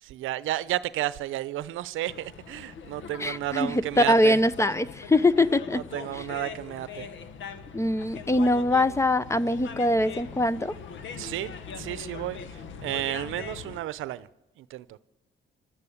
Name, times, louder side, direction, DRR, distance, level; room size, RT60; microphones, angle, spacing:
voice 1, 0.0-4.4 5.7-7.1 11.2-14.3 14.6-15.0, right 15 dB, 85° right, 0.7 m, -32 dB
sound 1, 2.1-13.8, left 6 dB, 75° left, 1.3 m, -41 dB
voice 2, 3.2-5.8 7.7-10.7, left 1 dB, 15° left, 0.7 m, -23 dB
28.0 x 12.5 x 8.6 m
cardioid pair, 90°, 20 cm